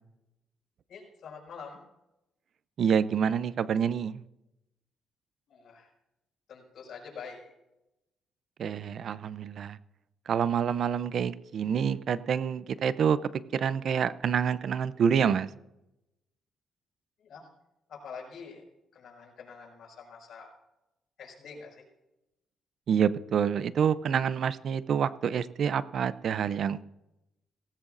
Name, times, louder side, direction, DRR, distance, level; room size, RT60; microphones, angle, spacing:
voice 1, 0.9-1.8 5.5-5.9 6.5-7.5 17.2-17.5 17.9-18.7 18.9-20.5 21.2-21.8, left 5 dB, 65° left, 1 dB, 5.5 m, -46 dB
voice 2, 2.8-4.2 8.6-9.8 10.3-15.5 22.9-26.8, right 7 dB, 60° right, 16 dB, 0.6 m, -27 dB
17.5 x 16.5 x 2.6 m, 0.90 s
cardioid pair, 90°, 0 cm